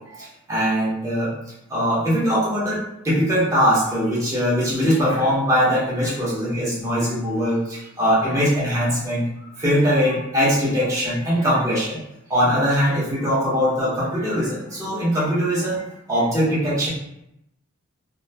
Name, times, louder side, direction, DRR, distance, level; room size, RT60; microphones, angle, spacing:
voice 1, 0.1-1.3 1.7-12.0 12.3-16.9, equal, 15° right, -8 dB, 0.8 m, -21 dB
2.7 x 2.2 x 2.7 m, 0.82 s
head